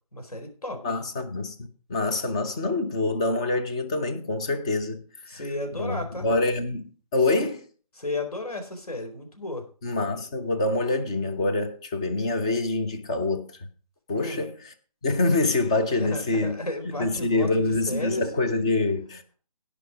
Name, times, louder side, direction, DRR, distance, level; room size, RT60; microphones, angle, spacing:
voice 1, 0.1-0.8 5.3-6.3 8.0-9.6 14.1-14.5 15.9-18.2, left 2 dB, 70° left, 4.5 m, -33 dB
voice 2, 0.8-5.0 5.3-5.4 5.7-7.6 9.8-13.5 14.1-14.7 15.0-16.6 16.8-19.3, left 2 dB, 10° left, 0.5 m, -26 dB
17.0 x 5.8 x 4.8 m
figure-of-eight pair, 155°, 20 cm